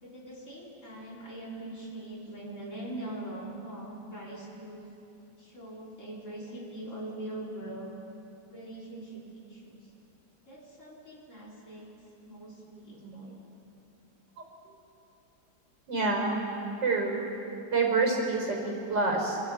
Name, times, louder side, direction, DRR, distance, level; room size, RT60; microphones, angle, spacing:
voice 1, 0.0-4.9 5.4-7.9 8.5-9.9 10.5-11.9 12.3-13.4, right 1 dB, 45° left, -4 dB, 4.7 m, -42 dB
voice 2, 1.8-2.2 15.9-16.4 16.8-17.1 17.7-19.4, right 3 dB, 90° right, 0 dB, 5.3 m, -27 dB
29.5 x 25.5 x 4.9 m, 2.8 s
omnidirectional pair, 1.9 m